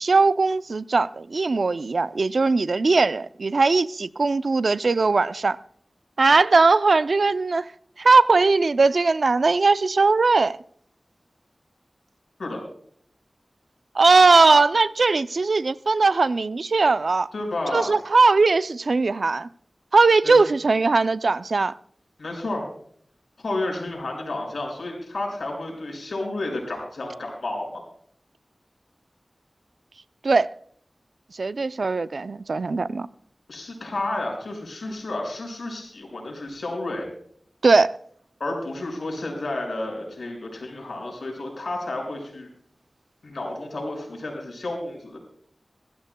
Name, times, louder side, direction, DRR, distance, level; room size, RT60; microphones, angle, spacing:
voice 1, 0.0-5.6 6.2-7.7 8.0-10.6 13.9-17.3 17.7-19.5 19.9-21.7 30.2-30.5 31.4-33.1 37.6-37.9, right 3 dB, 80° right, 0.4 m, -19 dB
voice 2, 17.3-17.9 20.2-20.4 22.2-22.7 23.4-27.8 33.5-37.1 38.4-42.5 43.2-45.2, left 2 dB, 90° left, 5.7 m, -31 dB
22.0 x 15.0 x 2.2 m
wide cardioid pair, 45°, 0 cm